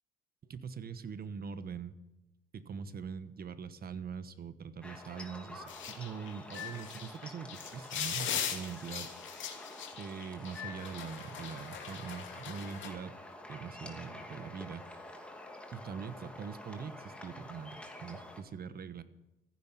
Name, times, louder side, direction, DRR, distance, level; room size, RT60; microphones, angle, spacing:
voice 1, 0.4-1.9 2.5-9.7 10.0-13.2 13.5-15.1 15.7-19.0, right 6 dB, 50° right, 13 dB, 1.2 m, -43 dB
sound 1, 4.8-18.4, left 1 dB, 5° left, 2.6 m, -49 dB
sound 2, 5.7-12.9, left 8 dB, 70° left, 2.6 m, -40 dB
15.0 x 10.5 x 9.1 m, 0.97 s
cardioid pair, 90°, 20 cm